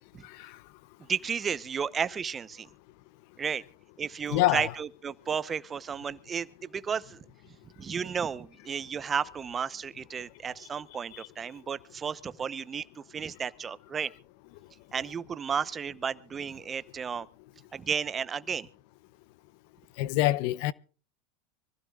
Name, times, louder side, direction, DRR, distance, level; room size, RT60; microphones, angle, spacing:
voice 1, 0.2-0.6 4.3-4.7 11.1-11.3 20.0-20.7, left 17 dB, 65° left, 0.6 m, -26 dB
voice 2, 1.0-2.7 3.4-3.6 4.0-7.2 7.8-14.1 14.9-17.3 17.7-18.7, right 7 dB, 25° right, 0.8 m, -33 dB
25.0 x 15.5 x 2.4 m
supercardioid pair, 115°, 0 cm